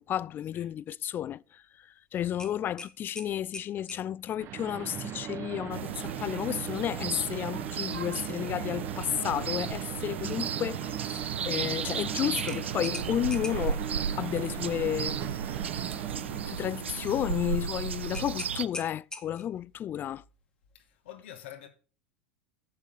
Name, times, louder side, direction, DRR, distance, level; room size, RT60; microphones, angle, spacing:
voice 1, 0.0-13.8 14.2-15.2 16.5-20.2, left 11 dB, 35° left, 0.4 m, -32 dB
sound 1, 2.4-4.1 6.7-6.9 7.3-7.4 12.4-13.8 18.1-19.6, left 2 dB, 10° left, 2.1 m, -42 dB
sound 2, 3.8-3.9 4.4-17.4, right 10 dB, 45° right, 1.2 m, -38 dB
sound 3, 5.7-18.7, right 7 dB, 80° right, 0.5 m, -35 dB
voice 2, 7.8-8.5 20.7-21.7, left 10 dB, 65° left, 2.3 m, -48 dB
9.2 x 7.3 x 6.9 m
hypercardioid pair, 85°, 6 cm